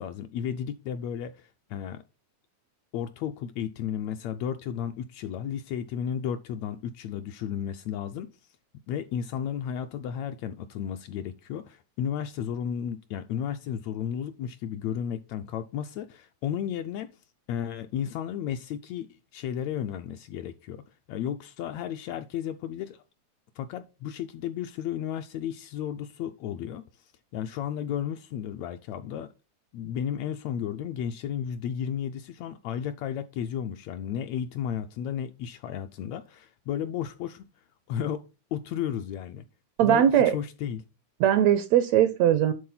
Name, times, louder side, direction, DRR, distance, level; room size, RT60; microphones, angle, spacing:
voice 1, 0.0-2.0 2.9-8.3 8.9-17.1 17.5-20.8 21.1-23.0 23.6-26.8 27.3-29.3 29.7-37.4 37.9-38.2 38.5-39.4 39.8-40.8, left 9 dB, 80° left, 1.6 m, -33 dB
voice 2, 39.8-40.3 41.2-42.5, right 10 dB, 80° right, 1.6 m, -20 dB
10.5 x 3.9 x 3.9 m
omnidirectional pair, 3.4 m